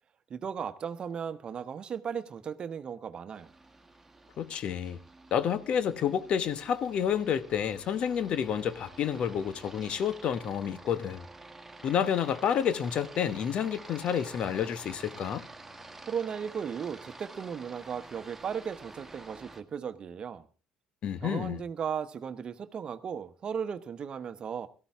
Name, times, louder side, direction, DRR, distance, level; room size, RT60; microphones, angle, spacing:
voice 1, 0.3-3.5 16.1-20.5 21.2-24.7, right 7 dB, 45° right, 1.0 m, -36 dB
Aircraft, 3.3-19.6, right 2 dB, 10° right, 1.8 m, -49 dB
voice 2, 4.4-5.0 5.3-11.2 11.8-15.4 21.0-21.6, left 8 dB, 55° left, 1.0 m, -29 dB
17.5 x 13.5 x 3.6 m
hypercardioid pair, 60°, 2 cm